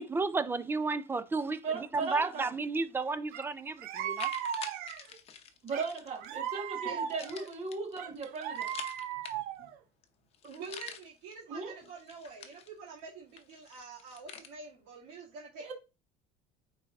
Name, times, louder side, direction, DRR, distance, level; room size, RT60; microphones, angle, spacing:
voice 1, 0.0-1.6 1.9-4.3, right 3 dB, 15° right, 0.5 m, -32 dB
voice 2, 1.6-2.5 5.6-8.7 11.5-11.7 15.6-15.7, right 4 dB, 40° right, 1.5 m, -37 dB
sound 1, 3.3-3.4 3.9-6.3 7.1-9.7 10.0-10.1 10.3-11.3 11.8-13.0 13.4-14.5, left 7 dB, 35° left, 0.8 m, -47 dB
sound 2, 3.3-3.5 3.8-5.2 5.7-7.5 8.0-9.8, right 9 dB, 60° right, 0.7 m, -37 dB
voice 3, 9.3-9.7 10.4-15.7, right 4 dB, 85° right, 2.4 m, -47 dB
9.2 x 4.1 x 2.5 m
cardioid pair, 145°, 17 cm